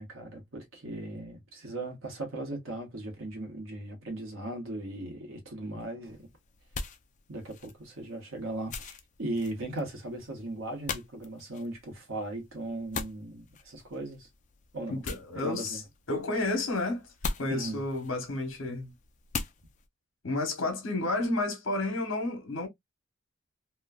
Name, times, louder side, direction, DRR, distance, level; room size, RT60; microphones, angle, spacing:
voice 1, 0.0-6.3 7.3-14.3 14.7-15.0 15.3-15.8 17.5-17.8, right 2 dB, 85° right, 1.2 m, -38 dB
sound 1, 6.0-19.9, left 4 dB, 40° left, 0.4 m, -42 dB
voice 2, 14.9-15.8 16.1-17.0 17.4-18.9 20.2-22.7, left 2 dB, 75° left, 1.0 m, -31 dB
3.0 x 2.2 x 2.2 m
head